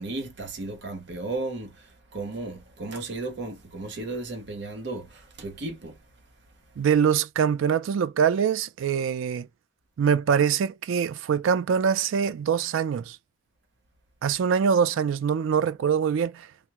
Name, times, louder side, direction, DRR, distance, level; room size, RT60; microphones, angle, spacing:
voice 1, 0.0-6.0, right 2 dB, 55° right, 0.7 m, -35 dB
voice 2, 6.8-9.5 10.0-13.2 14.2-16.5, right 7 dB, 70° right, 0.3 m, -24 dB
3.4 x 2.1 x 2.8 m
head